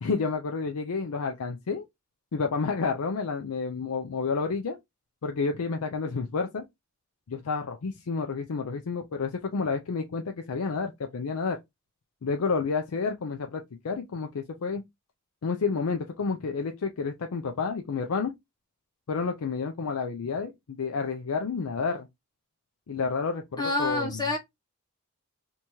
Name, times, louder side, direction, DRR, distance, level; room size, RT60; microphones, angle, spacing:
voice 1, 0.0-1.9 2.3-4.8 5.2-6.6 7.3-11.6 12.2-14.8 15.4-18.3 19.1-22.1 22.9-24.2, left 4 dB, 90° left, 0.5 m, -30 dB
voice 2, 23.6-24.4, left 2 dB, 20° left, 1.1 m, -27 dB
3.4 x 2.8 x 2.9 m
head